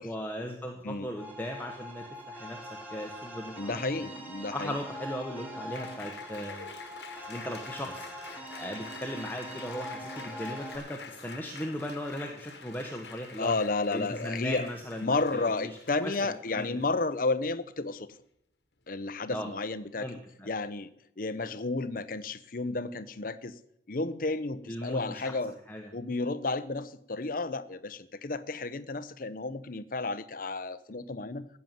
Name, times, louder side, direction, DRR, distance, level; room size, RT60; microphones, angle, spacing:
voice 1, 0.0-4.1 4.5-6.7 7.3-8.1 8.6-13.5 13.9-16.8 19.3-19.5 20.0-20.5 24.7-25.4 25.7-25.9, equal, 10° left, 1 dB, 1.2 m, -38 dB
sound 1, 1.2-10.8, equal, 10° right, 3.2 m, -43 dB
voice 2, 3.6-4.7 13.4-14.7 15.0-18.1 18.9-20.2 20.5-20.9 21.2-23.6 23.9-25.5 25.9-31.5, left 3 dB, 50° left, 15 dB, 0.8 m, -32 dB
Applause, 5.7-17.1, left 5 dB, 70° left, 1.4 m, -47 dB
15.0 x 6.9 x 9.3 m, 0.79 s
head